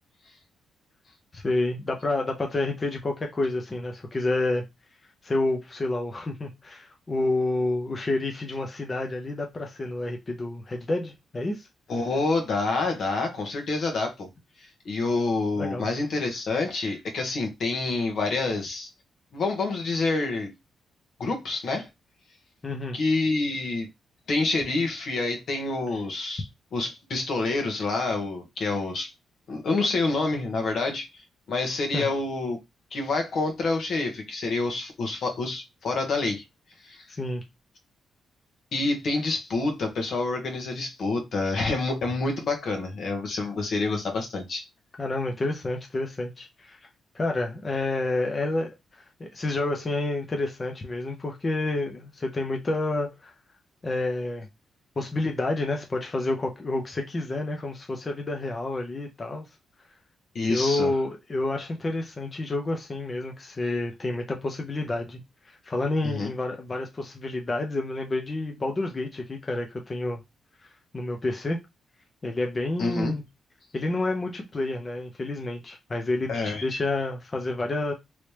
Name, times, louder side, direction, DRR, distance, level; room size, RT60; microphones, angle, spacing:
voice 1, 1.3-4.6 5.2-11.7 15.6-15.8 22.6-23.0 31.9-32.1 37.1-37.4 45.0-46.9 47.1-53.3 53.8-54.5 55.0-59.5 60.5-70.2 70.9-71.6 72.2-73.2 73.7-77.9, left 2 dB, 30° left, 0.7 m, -29 dB
voice 2, 11.9-14.3 14.8-18.9 19.3-20.5 21.2-21.9 22.9-23.9 24.3-26.5 26.7-29.1 29.5-31.1 31.5-32.6 32.9-36.4 36.8-37.0 38.7-44.6 60.3-60.9 66.0-66.3 72.8-73.1 76.3-76.7, left 3 dB, 65° left, 1.1 m, -27 dB
3.1 x 2.8 x 3.2 m
cardioid pair, 95°, 0 cm